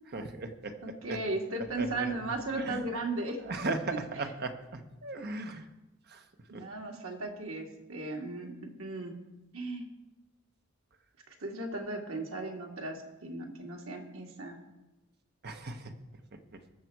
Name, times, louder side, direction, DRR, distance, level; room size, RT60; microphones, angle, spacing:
voice 1, 0.1-0.7 1.1-1.2 1.7-2.1 2.5-2.8 3.5-5.7 6.1-6.2 6.5-6.6 15.4-15.9, right 3 dB, 50° right, 6 dB, 1.1 m, -37 dB
voice 2, 0.8-3.4 3.9-4.0 6.5-9.1 9.5-9.8 11.4-14.6, right 2 dB, 85° right, 1 dB, 2.0 m, -36 dB
20.0 x 6.7 x 4.6 m, 1.0 s
head